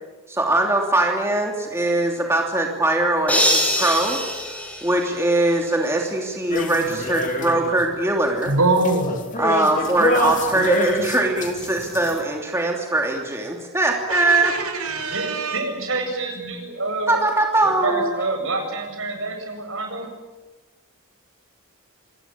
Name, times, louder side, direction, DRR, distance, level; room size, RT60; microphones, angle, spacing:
voice 1, 0.3-4.2 4.8-8.5 9.4-14.6 17.1-18.1, right 2 dB, 10° right, 1 dB, 2.9 m, -21 dB
sound 1, 3.3-5.6, left 1 dB, 5° left, 5.6 m, -23 dB
sound 2, 6.5-7.8 8.2-12.2, left 1 dB, 35° left, 2.9 m, -26 dB
voice 2, 8.5-9.2 14.1-15.6, right 2 dB, 80° right, 5 dB, 6.5 m, -22 dB
voice 3, 15.1-17.2 17.6-20.1, right 3 dB, 60° right, 4 dB, 7.6 m, -27 dB
26.5 x 21.0 x 8.7 m, 1.2 s
head